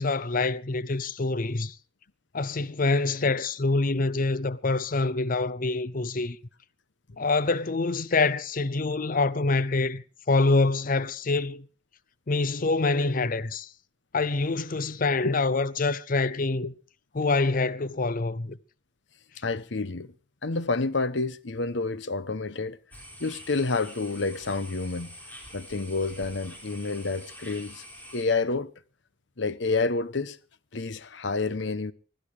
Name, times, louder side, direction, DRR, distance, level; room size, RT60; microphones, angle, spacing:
voice 1, 0.0-1.8 2.3-6.4 7.2-11.7 12.3-13.7 14.1-16.7 17.1-18.6, left 3 dB, 45° left, 0.7 m, -26 dB
voice 2, 19.4-20.1 20.4-22.8 23.2-25.1 25.5-27.8 28.1-28.7 29.4-30.4 30.7-31.9, left 3 dB, 70° left, 1.0 m, -29 dB
sound 1, 22.9-28.2, equal, 10° left, 4.3 m, -46 dB
20.5 x 13.0 x 4.9 m
head